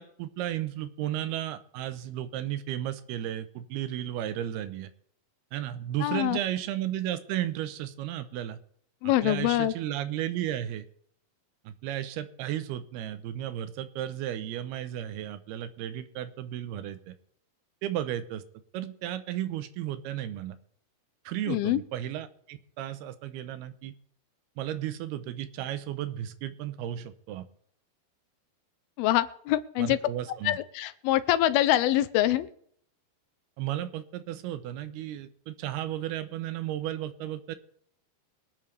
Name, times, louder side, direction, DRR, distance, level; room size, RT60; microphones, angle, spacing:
voice 1, 0.0-4.9 5.5-8.6 9.0-10.9 11.6-17.2 17.8-18.4 18.7-20.6 21.3-23.9 24.6-27.4 29.8-30.6 33.6-37.6, right 12 dB, 85° right, 12 dB, 2.8 m, -34 dB
voice 2, 6.0-6.4 9.0-9.7 21.5-21.8 29.0-30.0 30.4-32.5, left 14 dB, 80° left, 13 dB, 2.4 m, -25 dB
24.0 x 8.9 x 3.3 m, 0.65 s
omnidirectional pair, 4.4 m